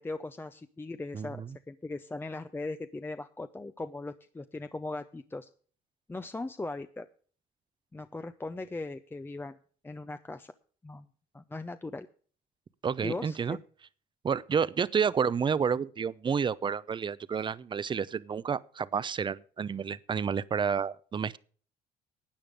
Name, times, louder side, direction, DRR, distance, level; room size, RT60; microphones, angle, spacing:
voice 1, 0.0-5.5 6.1-7.1 7.9-9.6 9.8-10.5 10.8-11.1 11.3-12.1 13.0-13.6, left 2 dB, 10° left, 0.6 m, -39 dB
voice 2, 1.1-1.5 12.8-13.6 14.2-21.4, right 6 dB, 30° right, 0.6 m, -30 dB
13.0 x 8.9 x 5.1 m
cardioid pair, 110°, 17 cm